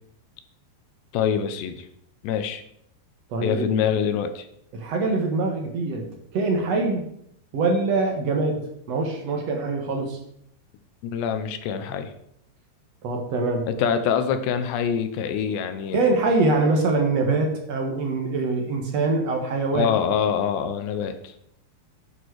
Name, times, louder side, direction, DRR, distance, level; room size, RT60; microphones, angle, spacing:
voice 1, 1.1-1.9 2.2-2.6 3.4-4.5 11.0-12.1 13.7-16.0 19.7-21.5, left 7 dB, 80° left, 9 dB, 2.9 m, -25 dB
voice 2, 3.3-3.7 4.7-6.1 6.3-7.1 7.5-8.6 8.9-10.2 13.0-13.7 15.9-19.9, right 3 dB, 60° right, 2 dB, 1.7 m, -23 dB
11.0 x 9.1 x 4.7 m, 0.73 s
omnidirectional pair, 5.1 m